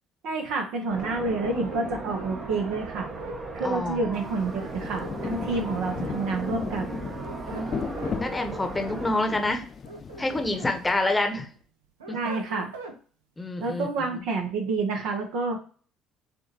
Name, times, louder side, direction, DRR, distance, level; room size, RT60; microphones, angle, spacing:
voice 1, 0.2-3.1 3.5-7.0 12.1-12.7 13.6-15.6, right 3 dB, 65° right, 3 dB, 1.1 m, -29 dB
sound 1, 0.9-9.1, right 3 dB, 45° right, 1.2 m, -37 dB
sound 2, 1.3-3.4 4.7-5.8 7.0-8.2 9.6-10.7 11.2-13.0, right 3 dB, 85° right, 0.7 m, -43 dB
voice 2, 3.6-4.0 7.4-9.6 10.2-11.5 12.1-12.2 13.4-13.9, left 2 dB, 15° left, 5 dB, 1.0 m, -27 dB
Rain, 4.1-11.4, left 6 dB, 40° left, 0.3 m, -37 dB
6.4 x 2.6 x 2.9 m, 0.42 s
hypercardioid pair, 55°, 0 cm